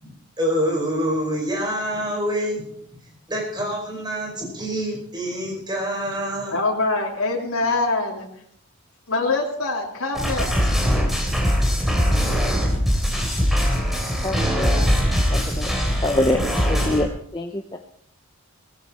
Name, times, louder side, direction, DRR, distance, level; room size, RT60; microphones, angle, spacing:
voice 1, 0.0-2.6 3.0-6.6, equal, 20° right, -1 dB, 4.9 m, -26 dB
voice 2, 6.5-8.3 9.1-10.5, left 3 dB, 75° left, -3 dB, 2.9 m, -24 dB
sound 1, 10.1-17.1, equal, ahead, 3.4 m, -21 dB
voice 3, 14.2-14.7 15.3-15.7 16.0-16.4 16.7-17.1 17.3-17.8, left 1 dB, 20° left, 4 dB, 0.8 m, -24 dB
18.0 x 15.0 x 4.3 m, 0.66 s
head